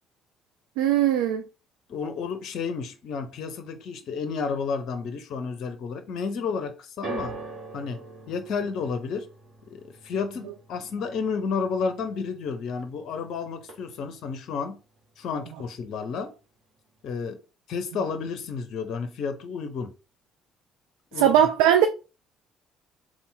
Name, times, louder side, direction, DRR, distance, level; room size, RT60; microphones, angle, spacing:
voice 1, 0.8-1.4 21.2-21.9, right 10 dB, 70° right, 0.3 m, -19 dB
voice 2, 1.9-7.4 7.7-9.3 9.7-14.8 15.2-16.3 17.0-17.4 17.7-19.9 21.1-21.4, left 5 dB, 55° left, 0.6 m, -31 dB
sound 1, 7.0-13.3 13.6-14.2 15.0-15.1, right 3 dB, 55° right, 1.2 m, -42 dB
3.4 x 2.4 x 4.2 m
figure-of-eight pair, 50°, 0 cm